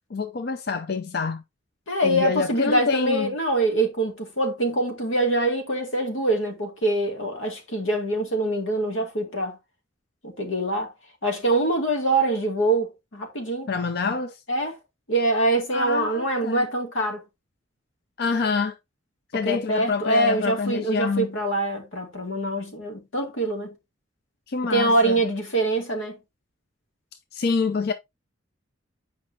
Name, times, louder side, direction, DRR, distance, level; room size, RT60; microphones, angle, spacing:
voice 1, 0.1-1.4 2.0-3.3 13.7-14.4 15.7-16.7 18.2-18.8 19.3-21.3 24.5-25.2 27.3-27.9, left 4 dB, 55° left, 0.5 m, -26 dB
voice 2, 1.9-9.6 10.2-10.9 11.2-13.7 14.5-14.8 15.1-17.2 19.4-23.7 24.7-26.2, right 2 dB, 90° left, 2.2 m, -24 dB
8.8 x 5.3 x 2.7 m
head